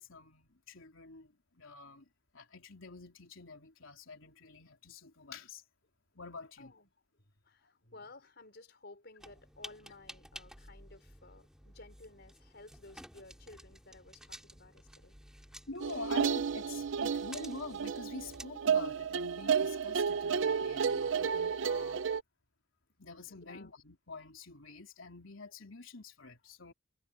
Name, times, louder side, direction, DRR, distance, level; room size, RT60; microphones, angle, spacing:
voice 1, 0.0-2.1 2.3-5.6 6.2-6.7 15.7-22.1 23.0-26.7, left 3 dB, 70° left, 3.6 m, -47 dB
voice 2, 6.6-15.2 23.3-23.7, left 2 dB, 50° left, 5.0 m, -55 dB
sound 1, 9.2-18.5, right 1 dB, 5° right, 4.1 m, -53 dB
sound 2, 15.8-22.2, right 6 dB, 60° right, 0.5 m, -32 dB
head